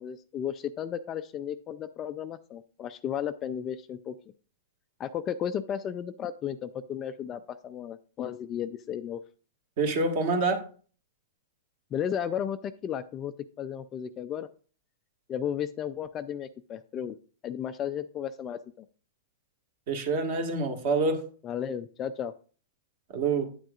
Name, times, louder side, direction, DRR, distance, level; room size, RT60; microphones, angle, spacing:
voice 1, 0.0-4.1 5.0-9.2 11.9-14.5 15.3-17.2 17.4-18.9 21.4-22.3, left 9 dB, 20° left, 10 dB, 0.3 m, -34 dB
voice 2, 9.8-10.6 19.9-21.2 23.1-23.4, right 3 dB, 40° right, 4 dB, 1.6 m, -26 dB
9.2 x 9.0 x 2.4 m, 0.41 s
supercardioid pair, 165°, 0 cm